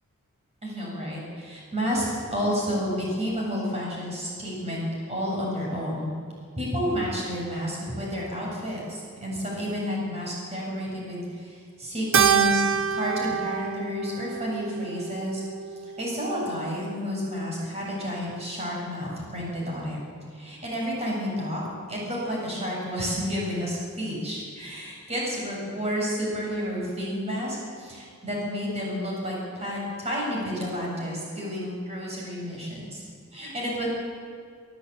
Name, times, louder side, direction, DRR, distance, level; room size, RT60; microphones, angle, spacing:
voice 1, 0.6-6.1 6.6-15.4 16.0-20.0 20.3-21.6 21.9-33.0 33.3-33.9, equal, 30° right, -3 dB, 7.9 m, -30 dB
Keyboard (musical), 12.1-16.7, right 7 dB, 60° right, 0.9 m, -27 dB
24.5 x 13.0 x 9.1 m, 2.1 s
head